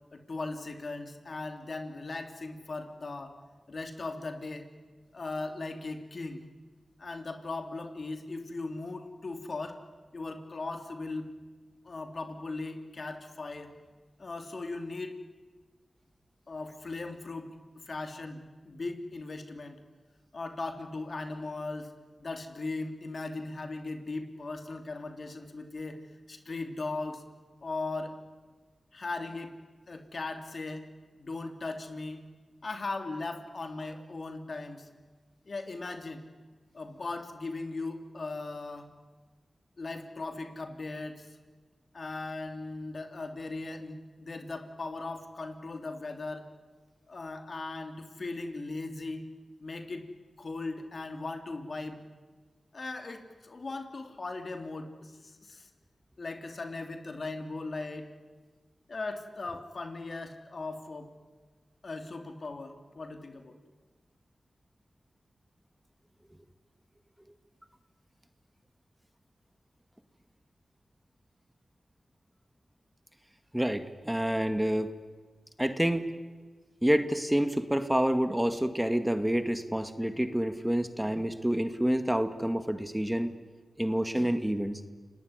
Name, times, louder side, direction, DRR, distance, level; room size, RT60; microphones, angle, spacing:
voice 1, 0.1-3.4 3.7-4.7 5.1-6.4 7.0-9.8 10.1-11.3 11.8-13.7 14.2-15.2 16.5-17.5 17.9-19.8 20.3-21.9 22.2-26.0 26.3-27.2 27.6-28.2 28.9-29.5 29.9-30.9 31.2-32.2 32.6-34.9 35.5-36.2 36.7-38.9 39.8-41.4 41.9-46.5 47.1-49.2 49.6-50.1 50.4-52.0 52.7-55.7 56.2-58.1 58.9-61.1 61.8-63.6, left 3 dB, 60° left, 7 dB, 2.9 m, -38 dB
voice 2, 73.5-74.9 75.6-76.1 76.8-83.3 83.8-84.8, right 1 dB, 10° right, 10 dB, 2.0 m, -28 dB
29.5 x 18.5 x 9.8 m, 1.4 s
cardioid pair, 45°, 0 cm